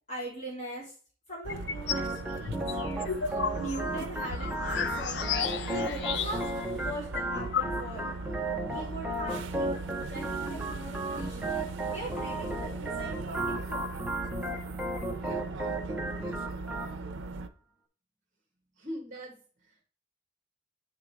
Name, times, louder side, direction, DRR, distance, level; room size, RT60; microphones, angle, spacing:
voice 1, 0.1-0.9 1.3-2.6 3.0-3.1 3.6-5.3 5.6-6.4 6.8-8.1 8.7-9.7 10.1-11.5 11.9-13.8, right 1 dB, 35° left, -5 dB, 2.6 m, -40 dB
sound 1, 1.4-17.5, right 3 dB, 80° right, 0.6 m, -39 dB
sound 2, 1.5-2.1 2.5-6.6 6.9-7.0 7.2-8.1, left 7 dB, 60° left, 0.5 m, -33 dB
Organ, 1.9-16.9, right 1 dB, 5° right, 0.7 m, -35 dB
voice 2, 18.7-19.8, equal, 40° right, -1 dB, 1.5 m, -42 dB
8.6 x 3.7 x 4.6 m, 0.41 s
head